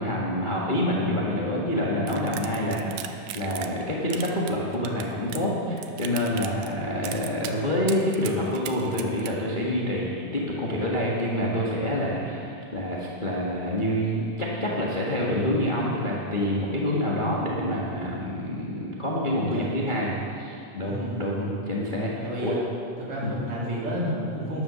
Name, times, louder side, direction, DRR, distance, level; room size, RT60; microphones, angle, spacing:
voice 1, 0.0-22.6 23.2-23.3, left 1 dB, 50° left, -5 dB, 0.5 m, -27 dB
sound 1, 2.1-3.8 4.1-5.5 5.8-6.7 7.0-7.5 7.9-9.3, right 12 dB, 75° right, 1.9 m, -37 dB
voice 2, 2.4-2.9 19.5-19.9 20.8-21.4 22.2-22.6 23.0-24.6, equal, 45° right, -6 dB, 3.6 m, -31 dB
12.5 x 10.0 x 6.8 m, 2.7 s
omnidirectional pair, 3.7 m